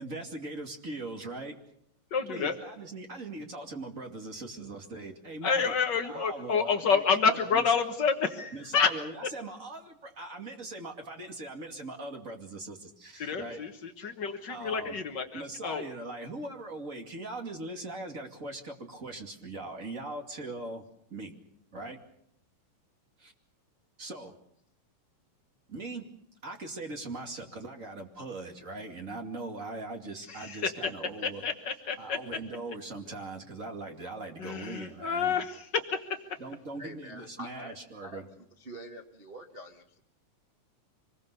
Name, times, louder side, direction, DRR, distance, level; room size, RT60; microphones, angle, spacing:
voice 1, 0.0-1.6 2.3-5.8 6.0-7.0 7.3-7.6 8.5-13.7 14.5-15.0 15.3-20.8 21.1-21.3 21.7-22.0 23.2-23.3 24.0-24.3 25.7-26.1 26.4-31.5 32.0-35.4 36.4-38.3, right 2 dB, 25° right, 3 dB, 2.4 m, -40 dB
voice 2, 2.1-2.6 5.4-8.9 13.2-15.9 30.3-30.9 31.2-32.4 34.4-35.7, left 6 dB, 75° left, 6 dB, 1.0 m, -29 dB
voice 3, 36.8-38.2 38.6-40.0, equal, 60° right, 1 dB, 0.6 m, -46 dB
25.5 x 21.0 x 6.8 m, 0.70 s
omnidirectional pair, 3.9 m